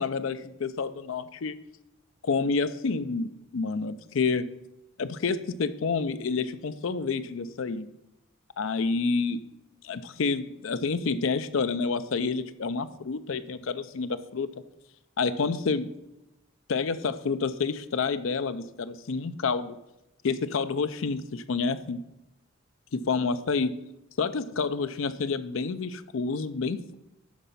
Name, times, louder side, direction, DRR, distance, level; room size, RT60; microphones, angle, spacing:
voice 1, 0.0-1.6 2.2-4.5 5.0-7.9 8.6-9.4 9.8-14.5 15.2-15.9 16.7-19.8 20.2-22.0 22.9-23.7 24.2-26.9, left 4 dB, 65° left, 12 dB, 0.5 m, -29 dB
11.5 x 4.1 x 5.4 m, 0.91 s
head